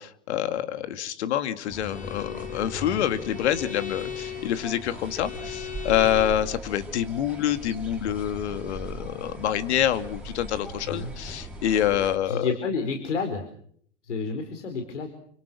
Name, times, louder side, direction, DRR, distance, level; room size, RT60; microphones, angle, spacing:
voice 1, 0.0-12.5, left 11 dB, 70° left, 10 dB, 2.6 m, -27 dB
sound 1, 1.7-12.2, right 1 dB, 5° right, 6.5 m, -39 dB
Bowed string instrument, 1.8-6.5, left 10 dB, 25° left, 5.0 m, -38 dB
voice 2, 12.2-13.4 14.0-15.1, left 4 dB, 85° left, 6 dB, 4.6 m, -30 dB
29.5 x 25.5 x 6.4 m, 0.64 s
hypercardioid pair, 115°, 35 cm